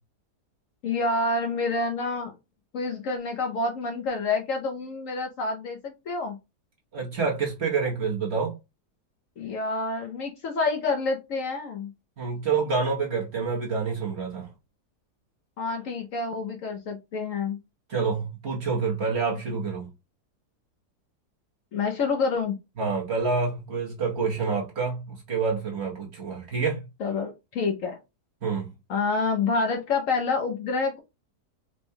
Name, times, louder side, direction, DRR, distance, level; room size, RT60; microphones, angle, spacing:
voice 1, 0.8-2.3 2.7-6.4 9.4-11.9 15.6-17.6 21.7-22.6 27.0-28.0 28.9-31.0, left 3 dB, 65° left, 0.9 m, -28 dB
voice 2, 6.9-8.5 12.2-14.5 17.9-19.9 22.8-26.9 28.4-28.7, right 5 dB, 50° right, 1.0 m, -27 dB
4.4 x 2.2 x 2.7 m
omnidirectional pair, 1.7 m